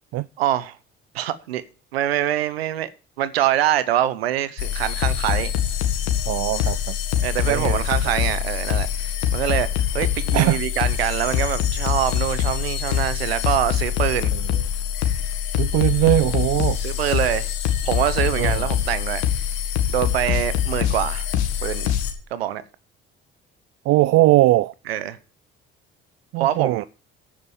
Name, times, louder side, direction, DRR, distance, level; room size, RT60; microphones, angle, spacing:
voice 1, 0.4-0.8 1.1-1.6 1.9-2.9 3.2-5.5 7.2-9.7 9.9-14.3 16.8-17.5 17.8-19.2 19.9-21.3 21.6-21.9 22.3-22.6 24.9-25.2 26.4-26.8, right 12 dB, 90° right, 0.9 m, -24 dB
Random Techno Beat, 4.6-22.1, left 10 dB, 80° left, 1.8 m, -24 dB
voice 2, 6.3-7.0 7.4-7.8 10.3-10.6 14.3-14.4 15.6-16.8 18.4-18.6 23.9-24.7 26.3-26.8, right 17 dB, 55° right, 0.5 m, -20 dB
9.9 x 8.0 x 7.2 m
hypercardioid pair, 55°, 30 cm